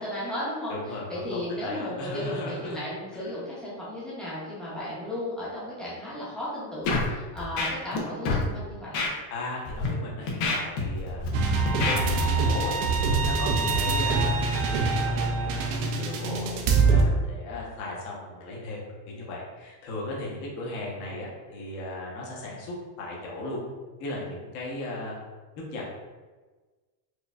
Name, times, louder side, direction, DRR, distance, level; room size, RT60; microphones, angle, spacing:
voice 1, 0.0-9.0 13.5-13.8, left 1 dB, ahead, -9 dB, 0.6 m, -35 dB
voice 2, 0.7-2.8 3.1-3.4 9.3-11.2 11.6-12.7 13.3-18.8 19.1-23.6 24.0-25.2 25.7-25.8, left 2 dB, 60° left, -4 dB, 1.1 m, -37 dB
Scratching (performance technique), 6.8-7.1 7.4-8.0 8.2-8.4 8.9-9.1 9.6-9.9 10.3-11.3 11.7-12.0, left 3 dB, 80° left, 0.9 m, -27 dB
sound 1, 11.3-17.0, right 4 dB, 45° right, 0.4 m, -24 dB
4.6 x 2.5 x 2.3 m, 1.3 s
cardioid pair, 175°, 44 cm